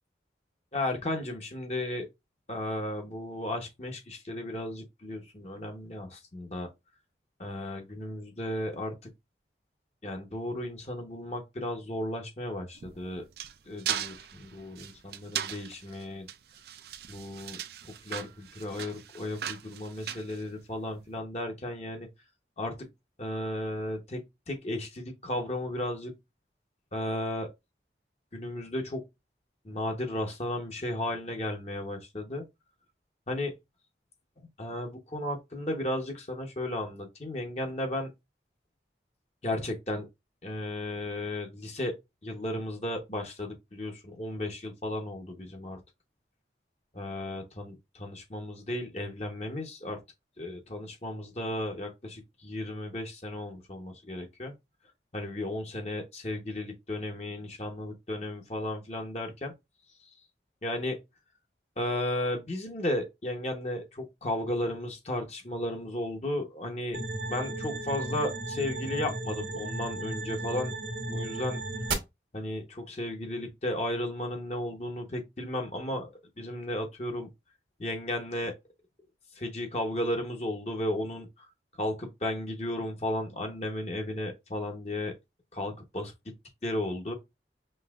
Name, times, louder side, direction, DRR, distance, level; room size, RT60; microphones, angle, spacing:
voice 1, 0.7-2.1 2.5-6.7 7.4-8.9 10.0-13.2 13.7-16.3 17.1-22.1 22.6-22.9 23.2-24.2 24.5-26.1 26.9-27.5 28.3-29.0 29.6-32.4 33.3-33.5 34.6-38.1 39.4-40.1 40.4-41.9 42.2-45.8 46.9-50.0 50.4-54.5 55.1-59.5 60.0-60.1 60.6-61.0 61.8-67.0 67.3-70.7 71.1-71.6 72.3-76.1 76.4-77.3 77.8-78.5 79.4-81.5 81.8-85.1 85.5-86.1 86.6-87.1, left 1 dB, 35° left, 0.9 m, -34 dB
sound 1, 12.8-21.0, right 9 dB, 60° right, 0.4 m, -38 dB
sound 2, 66.9-71.9, right 2 dB, 80° right, 1.2 m, -35 dB
5.4 x 3.0 x 2.4 m
head